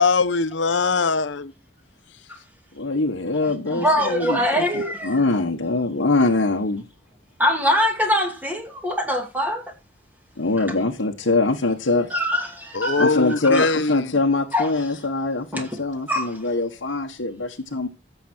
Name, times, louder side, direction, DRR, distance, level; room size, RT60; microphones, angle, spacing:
voice 1, 0.0-1.5 12.7-14.2, left 4 dB, 75° left, 0.8 m, -21 dB
voice 2, 2.7-6.8 10.4-12.1 13.0-17.9, left 3 dB, 90° left, 1.3 m, -23 dB
voice 3, 3.4-5.2 7.4-9.7 12.1-13.2 13.5-13.7 14.5-14.7 15.5-15.8 16.1-16.5, equal, 10° right, 2.4 m, -23 dB
14.5 x 7.0 x 4.4 m
head